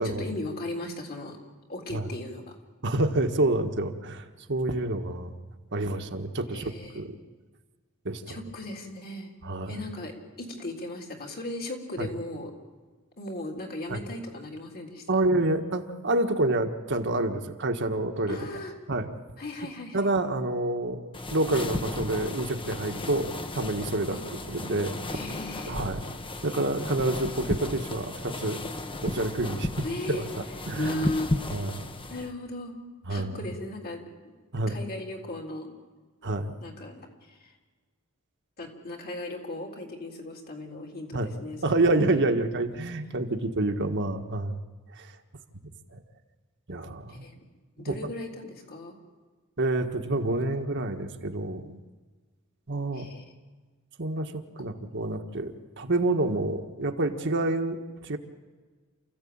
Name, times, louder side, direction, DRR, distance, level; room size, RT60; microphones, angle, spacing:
voice 1, 0.0-1.4 1.7-2.6 6.5-7.0 8.3-9.3 9.7-12.5 13.2-15.3 18.3-18.7 19.4-20.1 24.1-24.2 25.1-25.8 29.8-30.3 30.8-31.5 32.1-32.8 33.1-34.0 34.7-35.7 36.6-37.5 38.6-42.5 47.1-47.4 47.8-48.9 52.9-53.3, left 1 dB, 45° left, 1 dB, 3.7 m, -37 dB
voice 2, 2.8-5.4 5.7-7.2 8.0-8.4 9.4-9.8 12.0-12.1 13.9-14.0 15.1-18.4 18.9-19.1 19.9-24.2 24.5-24.9 25.6-26.0 26.4-28.6 29.0-30.3 30.7-31.1 31.5-31.9 33.1-33.4 34.5-34.8 36.2-36.5 41.1-41.3 41.6-44.6 45.0-45.1 45.9-46.0 46.7-47.3 47.8-48.0 49.6-51.8 52.7-53.1 54.0-58.2, right 2 dB, 55° right, 5 dB, 1.5 m, -28 dB
sound 1, 21.1-32.3, left 1 dB, 25° left, 1.2 m, -34 dB
29.0 x 15.0 x 8.8 m, 1.4 s
head